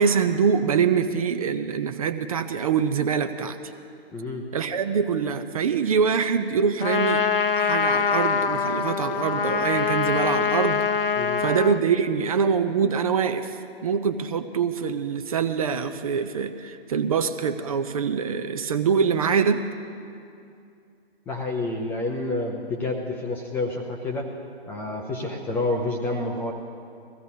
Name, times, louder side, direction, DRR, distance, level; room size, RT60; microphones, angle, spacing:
voice 1, 0.0-3.6 4.5-7.2 7.6-10.8 11.4-13.6 13.8-19.7, right 6 dB, 35° right, 9 dB, 0.6 m, -24 dB
voice 2, 4.1-4.5 11.2-11.4 21.3-24.3 24.7-26.5, left 2 dB, 5° left, 1 dB, 0.5 m, -29 dB
Trumpet, 6.8-11.8, left 6 dB, 60° left, 0.8 m, -24 dB
21.5 x 15.5 x 2.7 m, 2.5 s
figure-of-eight pair, 130°, 31 cm